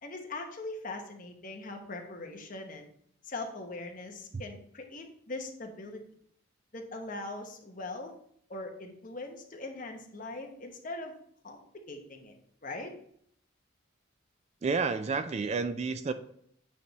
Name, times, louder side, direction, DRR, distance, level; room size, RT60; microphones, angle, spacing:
voice 1, 0.0-2.9 3.2-6.0 6.7-8.1 8.5-11.1 11.4-11.6 11.9-12.4 12.6-12.9, left 2 dB, 45° left, 3 dB, 1.0 m, -41 dB
voice 2, 14.6-16.1, right 4 dB, 35° right, 10 dB, 0.3 m, -30 dB
8.4 x 3.4 x 4.0 m, 0.66 s
head